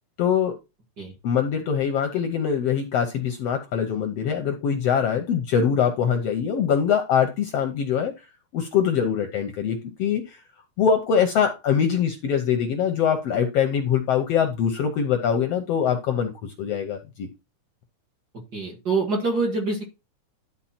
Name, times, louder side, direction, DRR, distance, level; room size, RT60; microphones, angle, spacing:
voice 1, 0.2-0.5 1.2-8.1 8.5-10.4 10.8-17.3, left 7 dB, 70° left, 1.6 m, -23 dB
voice 2, 18.5-19.8, right 3 dB, 35° right, 1.9 m, -25 dB
11.5 x 4.2 x 4.3 m
omnidirectional pair, 3.6 m